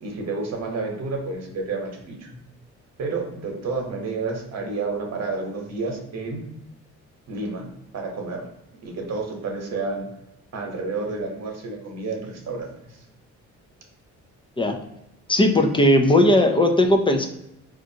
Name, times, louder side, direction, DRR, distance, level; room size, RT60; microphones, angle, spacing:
voice 1, 0.0-2.4 3.0-6.5 7.3-8.5 8.8-10.1 10.5-13.0, right 3 dB, 60° right, 1 dB, 1.0 m, -30 dB
voice 2, 15.3-17.3, left 1 dB, 15° left, 4 dB, 0.4 m, -17 dB
4.7 x 2.5 x 2.7 m, 0.85 s
cardioid pair, 90°, 30 cm